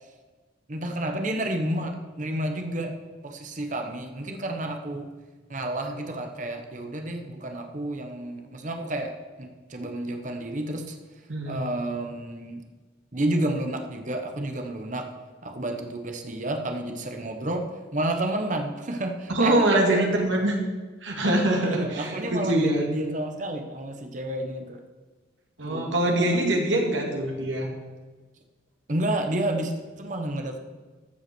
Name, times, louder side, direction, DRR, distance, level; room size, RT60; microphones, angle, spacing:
voice 1, 0.7-2.9 3.2-5.1 5.5-9.1 9.4-11.0 11.5-12.6 13.1-15.1 15.4-17.7 17.9-20.2 21.6-24.8 25.6-26.4 28.9-30.6, right 1 dB, 40° right, 4 dB, 1.0 m, -30 dB
voice 2, 11.3-11.6 19.3-20.5 21.0-22.9 25.6-27.7, right 1 dB, 80° right, 1 dB, 2.2 m, -24 dB
14.0 x 5.7 x 6.1 m, 1.3 s
head